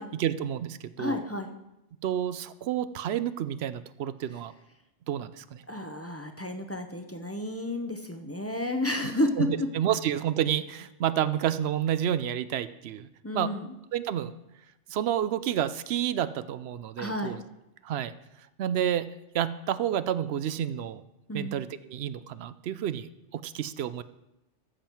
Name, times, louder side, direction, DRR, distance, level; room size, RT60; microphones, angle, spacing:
voice 1, 0.1-1.2 2.0-4.5 5.1-5.6 9.4-13.1 13.3-13.5 13.9-14.3 14.9-17.4 17.8-18.1 18.6-19.1 19.3-21.0 21.3-24.0, right 10 dB, 70° right, 15 dB, 0.8 m, -30 dB
voice 2, 1.0-1.5 5.7-9.7 13.2-13.7 17.0-17.4 21.3-21.5, left 1 dB, 15° left, 5 dB, 0.6 m, -31 dB
14.0 x 7.4 x 4.5 m, 0.88 s
omnidirectional pair, 1.2 m